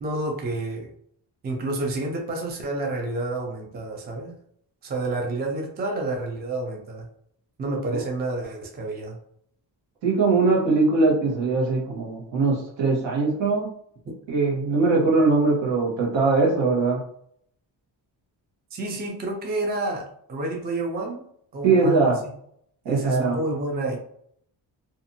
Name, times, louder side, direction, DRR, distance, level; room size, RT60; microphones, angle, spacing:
voice 1, 0.0-0.9 1.4-4.3 4.8-7.1 7.6-9.2 18.7-21.3 21.5-22.3 22.9-24.0, right 2 dB, 25° right, 1 dB, 0.4 m, -29 dB
voice 2, 10.0-13.7 14.3-17.0 21.6-22.2 22.8-23.4, right 3 dB, 75° right, -3 dB, 1.2 m, -21 dB
2.6 x 2.4 x 2.7 m, 0.66 s
wide cardioid pair, 145°, 44 cm